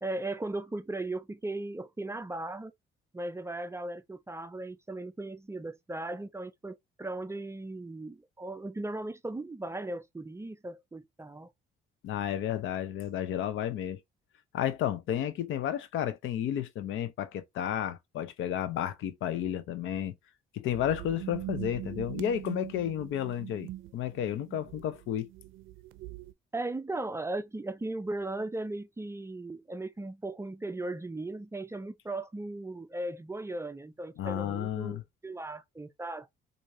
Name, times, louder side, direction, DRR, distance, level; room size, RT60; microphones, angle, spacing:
voice 1, 0.0-2.7 3.1-11.5 26.5-36.3, right 2 dB, 15° right, 0.4 m, -37 dB
voice 2, 12.0-14.0 14.5-20.1 20.5-25.3 34.2-35.0, left 10 dB, 80° left, 0.7 m, -32 dB
sound 1, 20.7-26.3, right 16 dB, 90° right, 0.5 m, -42 dB
4.6 x 2.6 x 2.6 m
cardioid pair, 90°, 20 cm